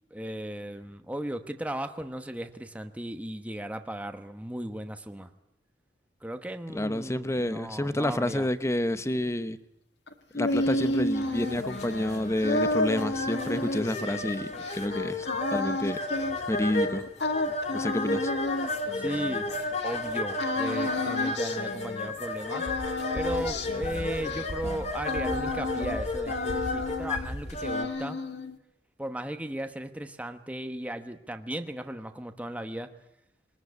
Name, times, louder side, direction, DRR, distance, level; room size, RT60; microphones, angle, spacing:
voice 1, 0.1-5.3 6.2-8.5 18.9-28.2 29.0-32.9, right 1 dB, 10° right, 7 dB, 1.1 m, -36 dB
voice 2, 6.7-9.6 10.3-15.3 15.5-16.0 16.5-17.0 17.7-18.3, left 1 dB, 15° left, 13 dB, 0.9 m, -29 dB
sound 1, 10.1-19.9 20.4-22.3 22.5-26.0 26.3-27.3 27.6-28.6, left 2 dB, 70° left, 1.9 m, -32 dB
sound 2, 10.5-27.8, left 2 dB, 40° left, 2.6 m, -34 dB
sound 3, 22.7-27.7, equal, 85° left, 1.6 m, -39 dB
22.0 x 20.0 x 9.7 m, 0.80 s
head